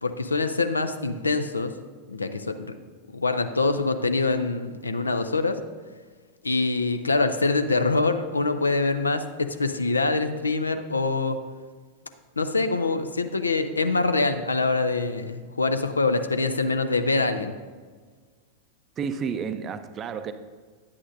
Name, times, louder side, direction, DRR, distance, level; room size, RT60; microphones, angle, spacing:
voice 1, 0.0-1.7 2.1-2.7 3.1-5.6 6.4-11.4 12.4-17.6, left 3 dB, 80° left, 9 dB, 0.4 m, -24 dB
voice 2, 19.0-20.3, right 6 dB, 25° right, 10 dB, 0.5 m, -31 dB
9.9 x 8.4 x 2.6 m, 1.5 s
figure-of-eight pair, 90°, 0 cm